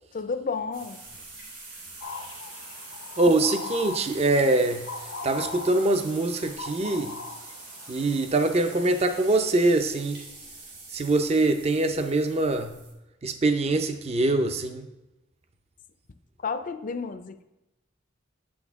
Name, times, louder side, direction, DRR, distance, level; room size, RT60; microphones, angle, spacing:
voice 1, 0.1-1.0 16.4-17.4, left 5 dB, 45° left, 10 dB, 0.5 m, -31 dB
sound 1, 0.7-12.9, right 3 dB, 85° right, 2.9 m, -44 dB
sound 2, 2.0-8.2, left 4 dB, 75° left, 0.7 m, -40 dB
voice 2, 3.2-4.8 5.2-7.1 7.9-10.2 10.9-12.7 13.2-14.8, right 2 dB, 30° right, 7 dB, 0.5 m, -23 dB
8.5 x 6.3 x 3.6 m, 0.95 s
head